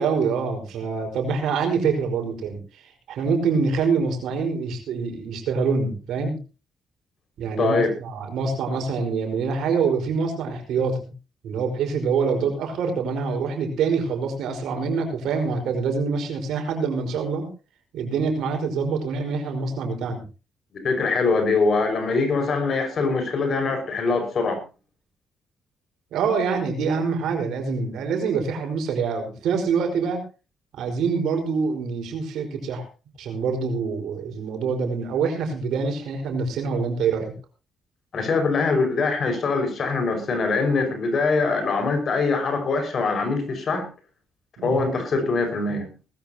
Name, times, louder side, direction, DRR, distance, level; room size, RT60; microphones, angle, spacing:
voice 1, 0.0-2.6 3.1-6.4 7.4-11.1 11.4-17.5 17.9-20.2 26.1-30.2 30.7-32.8 33.2-37.3 44.6-44.8, right 5 dB, 80° right, 4 dB, 5.0 m, -25 dB
voice 2, 7.6-7.9 20.8-24.6 38.1-43.9 44.6-45.9, left 4 dB, 55° left, 6 dB, 5.6 m, -23 dB
19.5 x 14.0 x 2.9 m, 0.32 s
cardioid pair, 90°, 0 cm